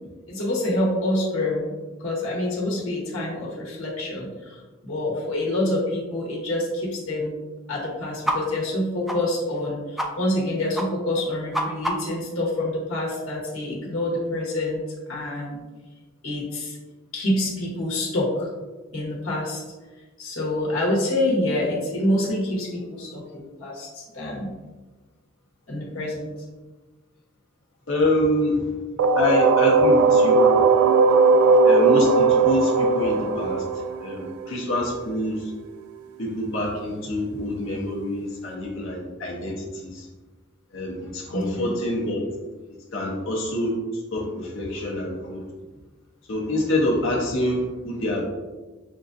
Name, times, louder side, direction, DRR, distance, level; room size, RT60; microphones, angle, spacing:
voice 1, 0.3-1.7 2.0-7.3 7.7-15.6 16.2-16.8 17.1-18.5 18.9-19.6 20.2-24.5 25.7-26.3 41.3-41.8, left 1 dB, 90° left, -5 dB, 1.2 m, -27 dB
sound 1, 8.2-8.4 8.6-8.8 9.1-9.2 9.5-9.6 10.0-10.1 10.3-10.5 10.7-10.9 11.2-12.2, right 1 dB, ahead, 0.3 m, -27 dB
voice 2, 27.9-28.7 29.2-30.5 31.6-33.6 34.0-35.5 36.2-40.1 40.7-42.3 42.9-43.8 44.1-45.4 46.3-48.2, left 1 dB, 65° left, -3 dB, 0.8 m, -26 dB
sound 2, 29.0-34.7, right 3 dB, 90° right, 0.3 m, -18 dB
6.2 x 2.4 x 2.6 m, 1.3 s
head